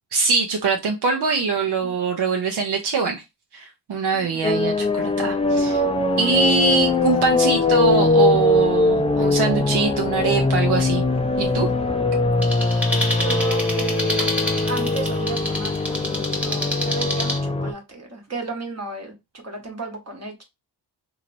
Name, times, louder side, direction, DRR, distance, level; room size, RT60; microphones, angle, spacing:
voice 1, 0.1-3.2 3.5-5.8 6.2-11.0 11.4-11.7, right 4 dB, 70° right, 2 dB, 0.7 m, -23 dB
voice 2, 4.1-4.4 13.2-19.1 19.4-20.4, right 3 dB, 40° right, 2 dB, 1.1 m, -34 dB
sound 1, 4.4-17.7, left 2 dB, 15° left, 0.4 m, -21 dB
sound 2, 12.4-17.4, left 1 dB, 5° right, 1.1 m, -28 dB
3.1 x 2.8 x 2.6 m, 0.23 s
cardioid pair, 75°, 41 cm